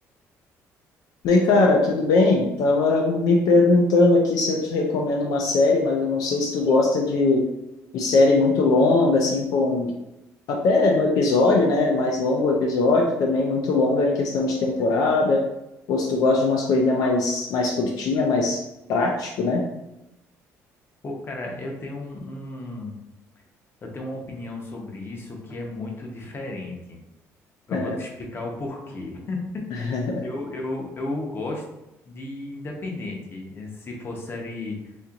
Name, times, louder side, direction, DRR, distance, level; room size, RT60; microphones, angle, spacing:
voice 1, 1.2-7.4 7.9-9.9 10.5-15.4 15.9-18.6 18.9-19.6 27.7-27.9 29.9-30.2, left 3 dB, 75° left, 0 dB, 0.5 m, -20 dB
voice 2, 21.0-23.0 23.8-27.0 27.7-29.4 29.7-29.9 30.2-31.6 32.1-34.8, left 2 dB, 35° left, 1 dB, 0.9 m, -34 dB
4.3 x 2.8 x 2.4 m, 0.92 s
cardioid pair, 100°, 6 cm